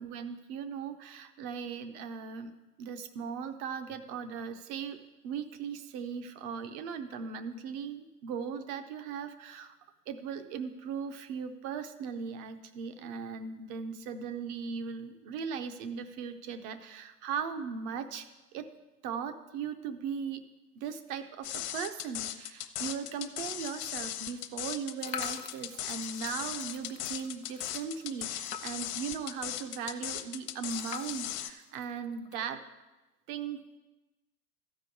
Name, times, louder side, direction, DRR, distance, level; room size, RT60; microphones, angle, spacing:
voice 1, 0.0-2.5 2.8-5.0 5.2-9.7 10.1-18.3 18.5-18.7 19.0-20.4 20.7-32.6 33.3-33.6, right 6 dB, 20° right, 9 dB, 0.4 m, -38 dB
sound 1, 21.4-31.5, left 12 dB, 45° left, 0.9 m, -38 dB
sound 2, 25.0-29.0 29.4-29.5 29.7-29.8 30.7-32.4, left 7 dB, 90° left, 0.8 m, -45 dB
13.0 x 5.4 x 8.1 m, 1.1 s
hypercardioid pair, 105°, 47 cm